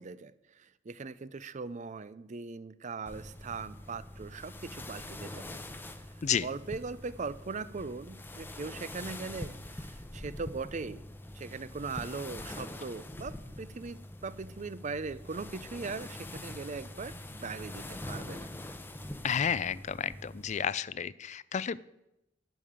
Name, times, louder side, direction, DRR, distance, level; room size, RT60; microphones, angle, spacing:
voice 1, 0.0-5.6 6.4-11.0 11.4-18.5, right 4 dB, 40° right, 16 dB, 0.5 m, -40 dB
sound 1, 3.1-20.6, left 1 dB, 10° left, 0.7 m, -44 dB
voice 2, 19.2-21.8, left 7 dB, 40° left, 18 dB, 0.4 m, -31 dB
11.0 x 6.8 x 8.7 m, 0.88 s
head